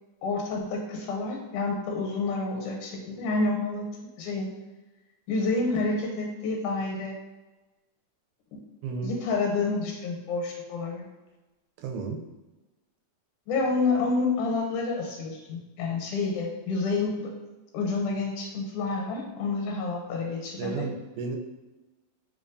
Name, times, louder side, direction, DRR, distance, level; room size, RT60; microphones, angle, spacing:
voice 1, 0.2-3.9 4.2-4.5 5.3-7.2 8.5-8.6 9.0-11.0 13.5-17.3 17.7-20.9, left 3 dB, 85° left, 0 dB, 2.1 m, -29 dB
voice 2, 8.8-9.2 11.8-12.3 20.6-21.4, right 4 dB, 90° right, 1 dB, 2.0 m, -33 dB
4.6 x 2.3 x 2.5 m, 1.1 s
omnidirectional pair, 3.5 m